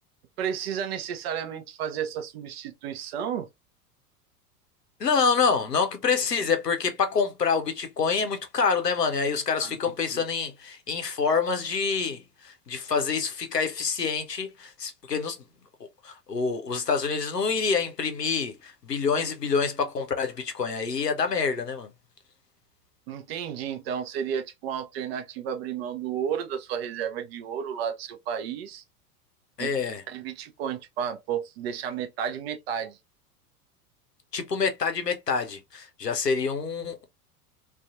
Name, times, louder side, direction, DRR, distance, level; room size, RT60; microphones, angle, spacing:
voice 1, 0.4-3.5 9.6-9.8 10.1-10.2 23.1-28.8 29.6-29.7 30.1-33.0, right 8 dB, 40° right, 0.5 m, -32 dB
voice 2, 5.0-15.4 16.0-21.9 29.6-30.0 34.3-37.0, left 5 dB, 90° left, 0.6 m, -27 dB
2.5 x 2.3 x 2.3 m
figure-of-eight pair, 85°, 47 cm